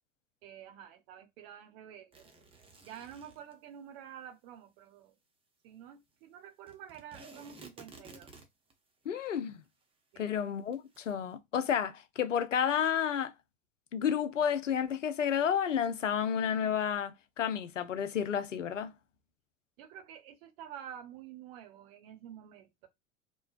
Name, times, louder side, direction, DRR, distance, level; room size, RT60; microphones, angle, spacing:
voice 1, 0.4-2.3 2.8-5.2 5.6-8.3 10.1-10.5 19.8-22.9, right 9 dB, 50° right, 0.8 m, -49 dB
sound 1, 2.1-3.5 6.7-8.7 9.4-9.5 9.6-9.7 10.7-11.1, right 3 dB, 15° right, 0.7 m, -53 dB
voice 2, 9.1-9.6 10.2-13.3 13.9-18.9, left 8 dB, 85° left, 0.5 m, -31 dB
3.1 x 2.1 x 2.4 m
figure-of-eight pair, 80°, 36 cm